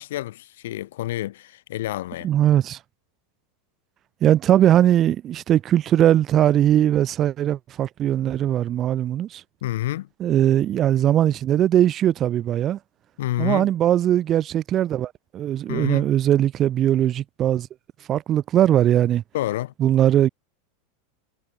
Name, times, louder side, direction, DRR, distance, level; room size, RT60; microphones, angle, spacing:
voice 1, 0.0-2.3 9.6-10.1 13.2-13.7 15.7-16.1 19.3-19.7, left 15 dB, 65° left, 1.9 m, -28 dB
voice 2, 2.2-2.8 4.2-9.4 10.2-12.8 13.4-17.7 18.1-19.2 19.8-20.3, right 11 dB, 35° right, 0.5 m, -20 dB
figure-of-eight pair, 90°, 0 cm